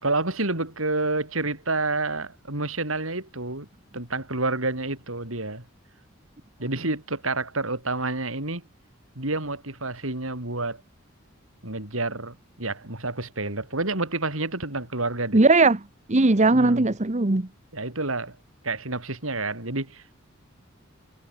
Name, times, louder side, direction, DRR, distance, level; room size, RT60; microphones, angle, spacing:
voice 1, 0.0-3.7 3.9-5.6 6.6-8.6 9.1-10.8 11.6-15.4 16.5-16.9 17.7-18.4 18.6-20.2, right 2 dB, 75° right, 5.1 m, -29 dB
voice 2, 15.3-15.8 16.1-17.5, right 3 dB, 35° right, 1.0 m, -18 dB
head